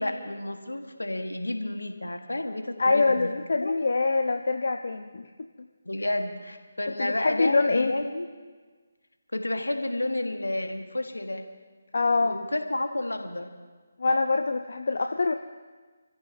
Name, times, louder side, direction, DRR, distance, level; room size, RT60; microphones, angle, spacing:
voice 1, 0.0-3.3 3.6-3.7 5.9-8.3 9.3-11.5 12.2-13.5, left 1 dB, 80° left, 5 dB, 1.7 m, -31 dB
voice 2, 2.8-5.3 7.0-7.9 11.9-12.4 14.0-15.3, left 3 dB, 60° left, 5 dB, 0.7 m, -24 dB
27.5 x 15.0 x 2.9 m, 1.4 s
figure-of-eight pair, 150°, 0 cm